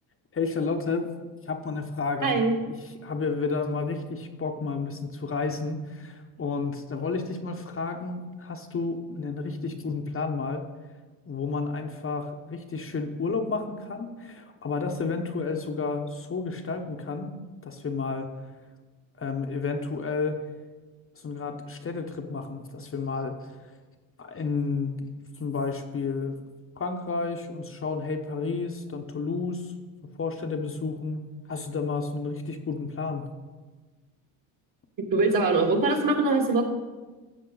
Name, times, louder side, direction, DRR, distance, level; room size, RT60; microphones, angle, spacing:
voice 1, 0.3-1.1 1.5-2.3 3.0-10.6 11.3-17.3 17.6-18.3 19.2-20.4 21.2-23.3 24.2-24.9 25.4-26.4 26.8-29.7 30.2-31.2 31.5-33.2, left 4 dB, 30° left, 4 dB, 1.0 m, -31 dB
voice 2, 2.2-2.5 35.1-36.6, right 3 dB, 45° right, 1 dB, 2.3 m, -22 dB
13.0 x 7.4 x 3.9 m, 1.3 s
supercardioid pair, 80°, 45 cm